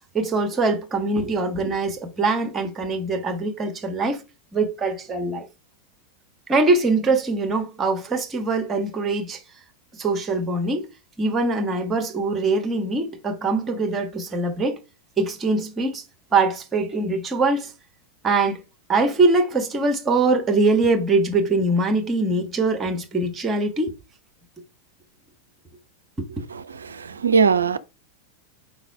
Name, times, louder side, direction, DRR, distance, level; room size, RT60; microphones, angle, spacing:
voice 1, 0.1-4.2 4.5-5.5 6.5-9.4 10.0-10.9 11.2-14.8 15.2-16.0 16.3-17.7 18.2-18.6 18.9-23.9, right 3 dB, 20° right, 1.5 m, -22 dB
voice 2, 26.5-27.8, right 5 dB, 70° right, 0.4 m, -21 dB
5.1 x 3.9 x 4.7 m
figure-of-eight pair, 90°, 0 cm